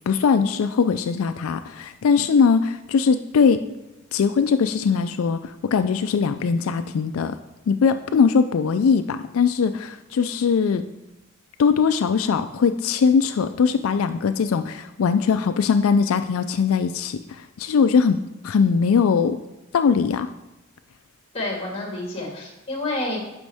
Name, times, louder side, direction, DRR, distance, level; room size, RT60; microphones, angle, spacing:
voice 1, 0.0-3.6 4.1-7.4 7.7-10.8 11.6-19.4 19.7-20.3, left 5 dB, 90° left, 9 dB, 0.4 m, -21 dB
voice 2, 21.3-23.2, left 2 dB, 30° left, 0 dB, 2.0 m, -29 dB
11.5 x 5.2 x 3.5 m, 1.0 s
head